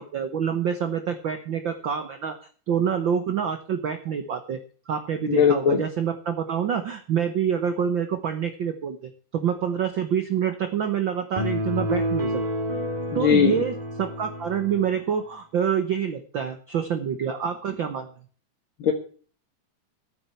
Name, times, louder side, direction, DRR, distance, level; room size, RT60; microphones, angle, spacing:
voice 1, 0.0-2.4 2.7-4.6 4.9-12.4 13.1-18.1, right 8 dB, 75° right, 8 dB, 1.1 m, -27 dB
voice 2, 5.3-5.8 13.1-13.6 18.8-18.9, left 7 dB, 50° left, 3 dB, 1.7 m, -19 dB
sound 1, 11.4-14.9, equal, 15° right, 1.6 m, -29 dB
9.9 x 9.0 x 8.3 m, 0.43 s
omnidirectional pair, 3.7 m